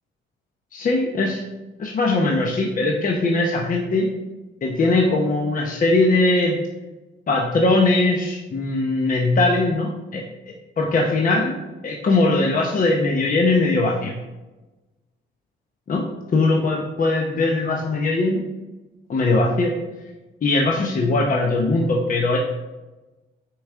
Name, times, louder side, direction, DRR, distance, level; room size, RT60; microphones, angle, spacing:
voice 1, 0.7-1.4 1.8-4.1 4.6-6.6 7.3-10.2 10.8-11.5 11.8-14.1 15.9-16.1 16.3-18.4 19.1-19.7 20.4-22.4, left 2 dB, 45° left, 0 dB, 0.8 m, -20 dB
6.2 x 4.8 x 3.6 m, 1.1 s
cardioid pair, 90°, 20 cm